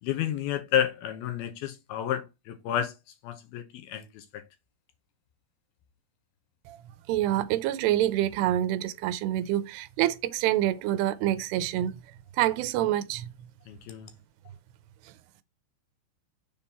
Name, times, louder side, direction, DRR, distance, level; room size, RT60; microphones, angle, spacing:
voice 1, 0.0-2.9 3.2-4.4 13.7-14.1, left 10 dB, 75° left, 2.6 m, -31 dB
voice 2, 7.1-12.0 12.4-13.3, right 13 dB, 85° right, 2.7 m, -26 dB
7.1 x 3.6 x 4.2 m
omnidirectional pair, 4.8 m